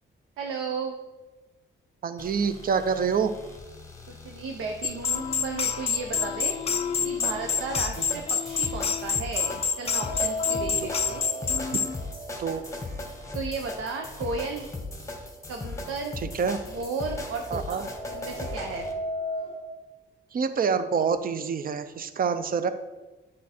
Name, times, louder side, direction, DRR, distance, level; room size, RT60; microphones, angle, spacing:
voice 1, 0.4-0.9 4.1-6.6 7.0-11.2 13.3-14.7 15.5-16.2 16.7-18.9, right 4 dB, 90° right, 2 dB, 0.7 m, -34 dB
voice 2, 2.0-3.3 12.4-12.6 16.3-16.6 17.5-17.9 20.3-22.7, right 6 dB, 45° right, 11 dB, 0.5 m, -26 dB
sound 1, 2.2-18.9, left 2 dB, 15° left, 0.9 m, -39 dB
sound 2, 4.8-12.0, left 6 dB, 30° left, 0.4 m, -28 dB
sound 3, 9.8-13.9 14.2-14.3 15.3-15.4 15.8-19.6, equal, 65° right, 1.6 m, -37 dB
8.2 x 3.7 x 4.3 m, 1.2 s
cardioid pair, 100°, 21 cm